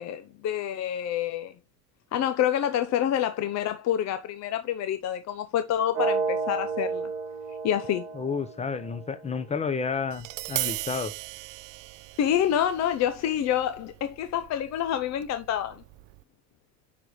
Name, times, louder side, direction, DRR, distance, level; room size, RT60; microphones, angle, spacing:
voice 1, 0.0-1.5 2.1-7.1 7.6-8.1 12.2-15.8, left 10 dB, 40° left, 0.7 m, -27 dB
sound 1, 5.9-9.9, right 4 dB, 90° right, 1.7 m, -32 dB
voice 2, 8.1-11.1, left 5 dB, 15° left, 0.9 m, -31 dB
Tap, 10.1-16.2, right 20 dB, 50° right, 0.5 m, -38 dB
9.8 x 4.0 x 3.2 m
supercardioid pair, 105°, 41 cm